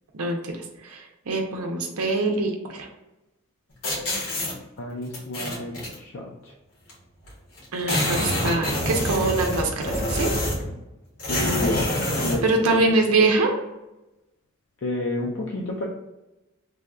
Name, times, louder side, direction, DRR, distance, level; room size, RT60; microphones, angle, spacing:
voice 1, 0.1-0.5 0.8-2.9 7.7-10.4 12.4-13.5, right 3 dB, 85° right, 1 dB, 0.6 m, -24 dB
sound 1, 3.8-4.5 5.1-5.9 6.9-7.0 7.2-7.3 7.6-10.7 11.2-12.4, left 1 dB, 75° left, 1.4 m, -26 dB
voice 2, 4.8-6.5 11.3-11.9 12.2-13.0 14.8-15.9, left 2 dB, 55° left, -1 dB, 0.4 m, -30 dB
3.4 x 2.3 x 3.6 m, 0.98 s
head